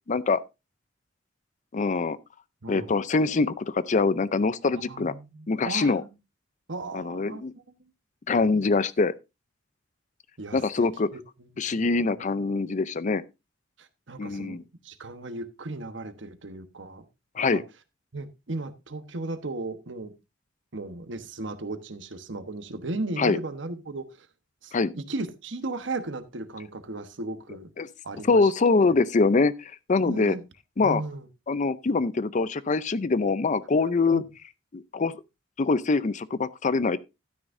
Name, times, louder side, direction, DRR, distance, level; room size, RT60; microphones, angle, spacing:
voice 1, 0.1-0.4 1.7-2.2 2.7-5.1 5.5-6.0 6.9-7.5 8.3-9.1 10.5-11.1 11.6-13.2 14.2-14.6 17.4-17.6 23.2-23.4 24.7-24.9 27.8-27.9 28.2-30.3 30.8-31.0 31.5-34.2 34.7-35.1 35.6-37.0, left 3 dB, 40° left, 0.5 m, -24 dB
voice 2, 2.6-2.9 4.8-6.1 6.7-7.6 8.3-8.5 10.4-11.9 12.2-12.3 13.8-17.0 17.4-17.6 18.1-20.1 20.7-24.3 24.6-27.7 28.0-28.5 28.8-28.9 30.0-30.4 30.8-31.3 34.1-34.2, right 2 dB, 70° right, 1.1 m, -36 dB
12.0 x 9.9 x 2.6 m
head